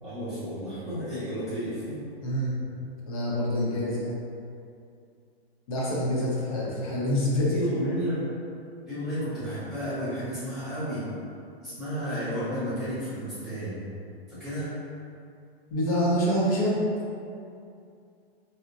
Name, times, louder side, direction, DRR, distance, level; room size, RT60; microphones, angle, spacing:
voice 1, 0.0-2.0 7.5-8.3 8.9-11.1 11.6-13.9 14.3-14.7, equal, ahead, -17 dB, 0.7 m, -32 dB
voice 2, 3.1-4.2 5.7-7.6 15.7-16.8, equal, 35° left, -6 dB, 0.6 m, -26 dB
2.6 x 2.1 x 3.8 m, 2.5 s
hypercardioid pair, 165°, 32 cm